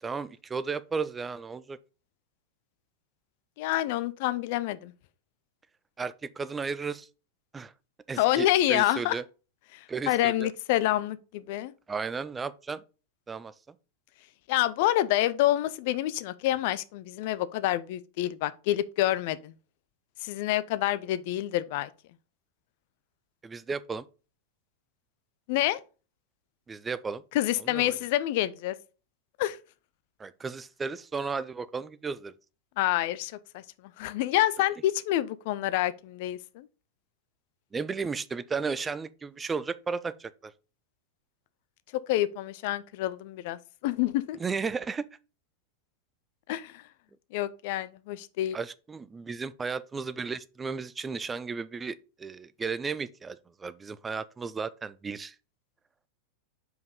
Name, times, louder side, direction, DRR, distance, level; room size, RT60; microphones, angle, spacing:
voice 1, 0.0-1.8 6.0-7.1 7.5-7.7 8.1-9.2 9.9-10.5 11.9-12.8 13.3-13.5 23.4-24.1 26.7-27.2 27.6-28.0 30.2-32.3 37.7-40.5 44.4-45.1 48.5-55.3, right 5 dB, 15° right, 0.4 m, -34 dB
voice 2, 3.6-4.9 8.2-9.2 9.7-11.7 14.5-19.5 20.2-21.9 25.5-25.8 27.3-28.7 29.4-29.6 32.8-33.6 34.0-36.7 42.1-44.4 46.5-46.8 47.3-48.6, left 14 dB, 50° left, 0.5 m, -27 dB
5.3 x 4.7 x 5.0 m
figure-of-eight pair, 90°, 0 cm